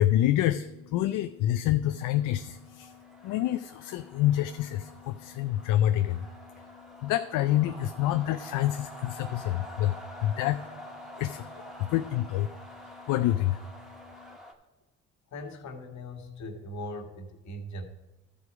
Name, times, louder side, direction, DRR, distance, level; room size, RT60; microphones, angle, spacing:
voice 1, 0.0-14.4, left 13 dB, 75° left, 11 dB, 0.5 m, -28 dB
sound 1, 1.9-14.5, equal, ahead, 1.9 m, -47 dB
voice 2, 15.3-17.8, left 1 dB, 60° left, 5 dB, 1.7 m, -40 dB
12.5 x 5.1 x 4.7 m, 1.1 s
supercardioid pair, 65°, 31 cm